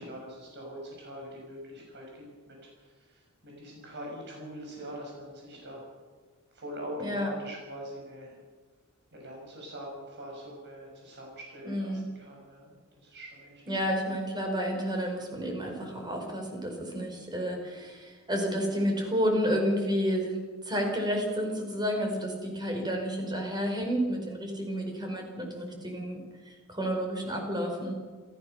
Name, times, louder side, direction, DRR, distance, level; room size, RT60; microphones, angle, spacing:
voice 1, 0.0-5.8 6.5-8.3 9.1-14.0, equal, 55° right, -1 dB, 6.7 m, -43 dB
voice 2, 7.0-7.3 11.6-12.1 13.7-20.4 20.6-27.9, equal, 20° right, 2 dB, 5.1 m, -30 dB
27.0 x 15.5 x 6.7 m, 1.4 s
head